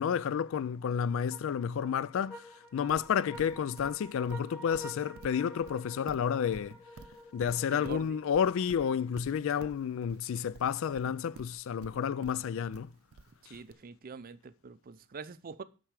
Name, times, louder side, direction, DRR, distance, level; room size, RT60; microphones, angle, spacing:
voice 1, 0.0-2.5 2.7-6.7 7.3-12.9, left 7 dB, 65° left, 0.3 m, -31 dB
sound 1, 1.3-8.8, left 1 dB, 10° left, 2.8 m, -50 dB
Livestock farm animals working animals, 2.9-13.7, right 3 dB, 85° right, 0.6 m, -51 dB
voice 2, 7.7-8.2 13.5-15.6, right 5 dB, 45° right, 0.5 m, -45 dB
9.0 x 6.0 x 4.8 m
head